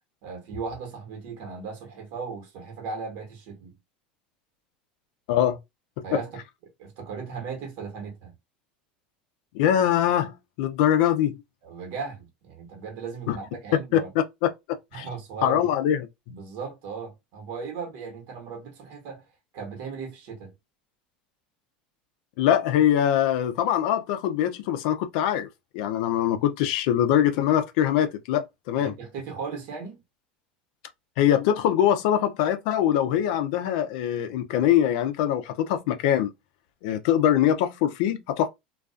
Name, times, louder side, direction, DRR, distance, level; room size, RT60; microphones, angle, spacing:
voice 1, 0.2-3.7 6.0-6.4 6.8-8.4 11.6-14.1 14.9-15.7 16.3-19.2 19.5-20.5 28.8-30.0, right 5 dB, 60° right, 1.1 m, -37 dB
voice 2, 5.3-5.6 6.0-6.2 9.5-11.4 13.3-13.4 13.9-14.5 14.9-15.1 15.4-16.1 22.4-25.5 25.7-28.9 31.2-36.3 36.8-38.5, left 10 dB, 65° left, 0.4 m, -23 dB
2.3 x 2.3 x 2.4 m
hypercardioid pair, 90°, 5 cm